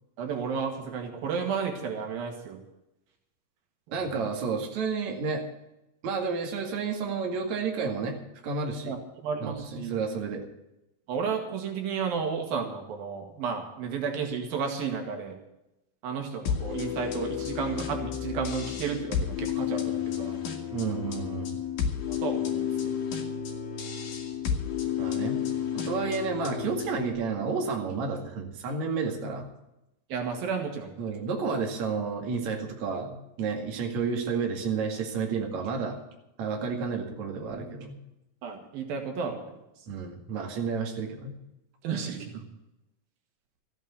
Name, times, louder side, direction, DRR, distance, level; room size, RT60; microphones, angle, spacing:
voice 1, 0.2-2.6 4.0-4.2 8.9-9.0 9.2-9.9 11.1-15.4 16.0-20.4 20.7-20.8 22.1-22.9 30.1-30.9 38.4-39.4 41.8-42.3, right 6 dB, 85° right, 3 dB, 3.8 m, -32 dB
voice 2, 3.9-5.4 6.0-8.2 8.4-8.9 9.4-10.4 20.7-21.5 25.0-25.4 25.8-29.4 31.0-36.0 36.4-38.0 39.9-41.3, right 5 dB, 55° right, 1 dB, 3.4 m, -31 dB
sound 1, 16.5-27.1, left 8 dB, 60° left, 3.1 m, -31 dB
14.5 x 9.0 x 8.3 m, 0.90 s
omnidirectional pair, 4.0 m